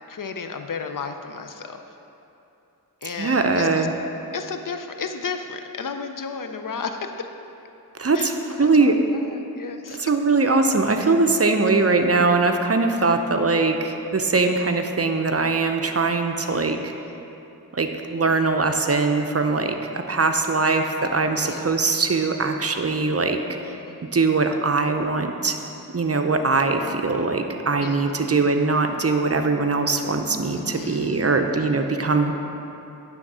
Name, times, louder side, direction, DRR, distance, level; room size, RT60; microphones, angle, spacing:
voice 1, 0.1-1.8 3.0-3.9 4.3-7.0 8.1-10.0 21.4-21.6 23.7-24.0 27.8-28.0 30.5-31.3, left 5 dB, 60° left, 7 dB, 0.6 m, -33 dB
voice 2, 3.0-3.9 8.0-9.0 9.9-16.8 17.7-23.4 24.1-25.6 25.9-32.3, right 3 dB, 40° right, 5 dB, 0.6 m, -21 dB
9.7 x 3.6 x 6.2 m, 2.9 s
cardioid pair, 40°, 37 cm